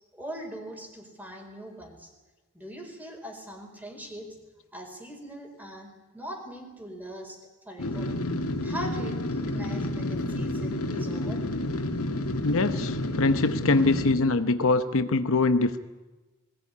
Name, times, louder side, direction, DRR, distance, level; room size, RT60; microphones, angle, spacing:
voice 1, 0.1-2.1 2.5-4.4 4.7-7.4 7.6-8.1 8.6-11.5, equal, 10° right, 3 dB, 4.4 m, -41 dB
sound 1, 7.8-14.2, left 1 dB, 85° left, 2.1 m, -30 dB
voice 2, 12.4-15.8, left 3 dB, 65° left, 10 dB, 0.9 m, -23 dB
20.5 x 17.0 x 9.9 m, 1.2 s
head